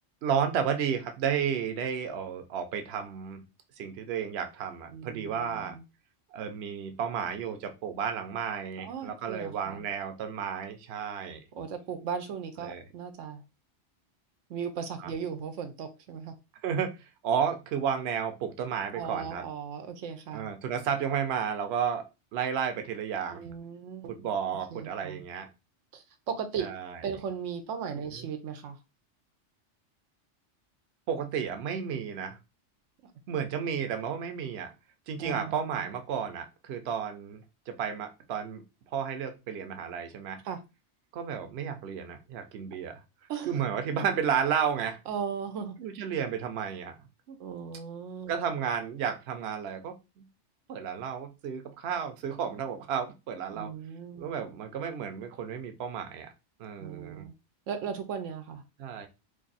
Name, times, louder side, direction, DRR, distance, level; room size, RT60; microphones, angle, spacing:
voice 1, 0.2-3.4 3.8-5.8 6.3-11.4 12.6-12.8 15.0-15.1 16.6-16.9 17.2-19.4 20.3-22.0 22.3-23.4 24.0-25.5 26.6-27.0 28.2-28.3 31.1-32.4 33.3-34.7 35.1-38.6 38.9-40.4 41.1-43.0 43.5-45.0 45.8-46.9 47.3-47.4 48.3-50.3 50.7-53.7 54.2-56.3 56.6-57.3 58.8-59.1, right 7 dB, 65° right, 7 dB, 0.9 m, -32 dB
voice 2, 4.9-5.8 8.8-9.8 11.5-13.4 14.5-16.3 18.9-20.5 23.3-25.3 25.9-26.7 27.0-28.8 35.2-35.6 40.4-40.6 43.3-43.6 45.1-45.8 47.4-48.3 53.5-54.3 56.8-57.3 57.7-58.6, right 7 dB, 90° right, 7 dB, 1.0 m, -37 dB
2.7 x 2.5 x 3.9 m, 0.26 s
omnidirectional pair, 1.2 m